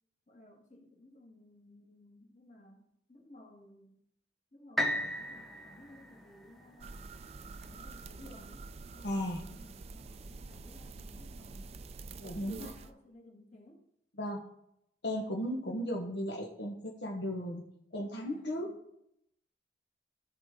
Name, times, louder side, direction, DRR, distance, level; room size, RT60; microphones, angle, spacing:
voice 1, 0.3-4.0 4.5-7.0 7.7-11.7 12.2-13.8 18.2-18.8, left 1 dB, 45° left, 0 dB, 1.9 m, -57 dB
sound 1, 4.8-8.7 9.3-9.4, equal, ahead, 0.9 m, -37 dB
sound 2, 6.8-12.9, right 3 dB, 35° right, 0.4 m, -47 dB
voice 2, 9.0-9.4 12.2-12.7 14.2-14.4 15.0-17.6 17.9-18.7, equal, 80° left, -1 dB, 1.3 m, -35 dB
14.0 x 5.0 x 3.8 m, 0.76 s
head